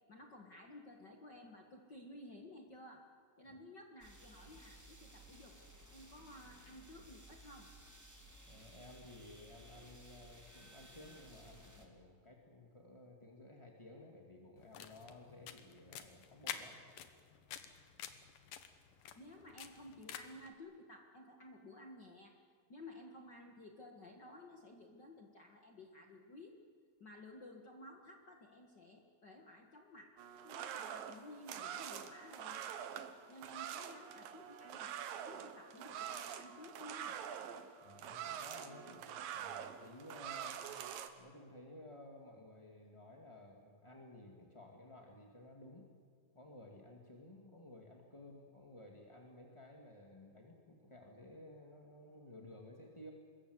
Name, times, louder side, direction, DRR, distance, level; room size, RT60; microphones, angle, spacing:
voice 1, 0.1-3.1 3.4-5.5 5.9-7.7 19.2-22.4 22.7-26.6 27.0-32.7 33.3-37.3, left 1 dB, 40° left, 2 dB, 1.7 m, -55 dB
sound 1, 4.0-11.9, right 1 dB, 5° right, 2.4 m, -58 dB
voice 2, 8.4-16.8 37.8-40.7 41.2-45.9 46.3-53.1, left 1 dB, 15° left, 0 dB, 1.3 m, -55 dB
sound 2, 14.6-20.5, left 9 dB, 70° left, 2.9 m, -49 dB
sound 3, 30.2-41.1, right 9 dB, 85° right, 3.0 m, -46 dB
26.0 x 21.5 x 8.0 m, 2.1 s
omnidirectional pair, 4.0 m